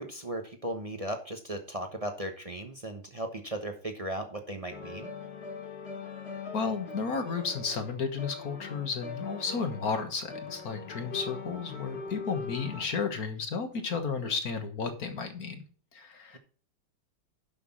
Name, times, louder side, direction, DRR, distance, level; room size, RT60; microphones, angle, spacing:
voice 1, 0.0-5.1, right 1 dB, 35° right, 5 dB, 0.6 m, -36 dB
sound 1, 4.7-12.9, left 4 dB, 30° left, 2.2 m, -41 dB
voice 2, 6.5-15.6 15.9-16.4, left 5 dB, 45° left, 7 dB, 1.6 m, -33 dB
11.5 x 5.9 x 4.1 m, 0.40 s
omnidirectional pair, 2.4 m